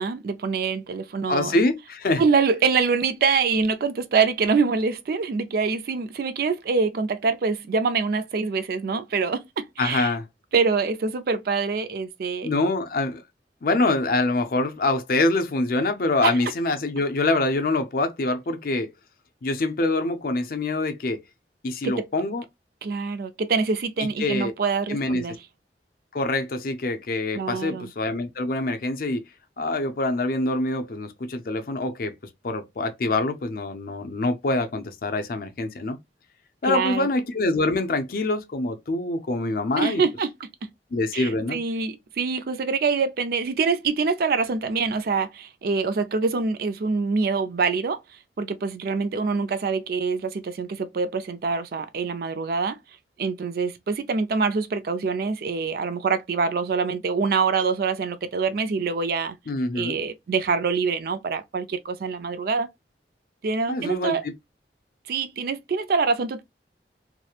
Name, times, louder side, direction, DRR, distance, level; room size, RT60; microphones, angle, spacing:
voice 1, 0.0-1.5 2.2-10.1 10.5-12.5 16.2-16.3 21.8-22.1 22.8-25.4 27.3-27.9 36.6-37.1 39.8-40.3 41.1-48.0 48.4-52.8 53.2-59.3 59.7-62.7 63.4-64.2 65.1-66.4, right 4 dB, 55° right, 0.4 m, -25 dB
voice 2, 1.3-2.2 9.8-10.2 12.4-13.2 13.6-18.9 19.4-21.2 21.6-22.4 24.0-24.5 24.9-25.2 26.1-29.2 29.6-32.1 32.4-36.0 36.6-40.0 40.9-41.6 59.5-60.0 63.7-64.3, left 2 dB, 50° left, 0.5 m, -25 dB
2.9 x 2.0 x 2.3 m
head